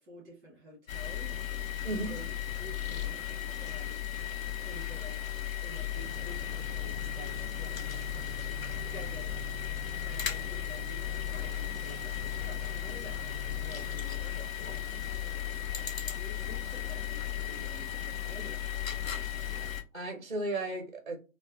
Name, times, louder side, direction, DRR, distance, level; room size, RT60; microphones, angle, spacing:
voice 1, 0.0-2.3 2.6-4.1 4.6-5.2 5.6-9.6 10.0-15.6 16.0-19.3, equal, 10° right, 0.9 m, -50 dB
sound 1, 0.9-19.8, left 10 dB, 60° left, 0.6 m, -36 dB
voice 2, 1.8-2.2 19.6-21.2, right 2 dB, 35° right, 0.4 m, -35 dB
sound 2, 5.9-14.0, right 3 dB, 35° left, 0.8 m, -47 dB
4.4 x 2.1 x 2.3 m
figure-of-eight pair, 130°, 46 cm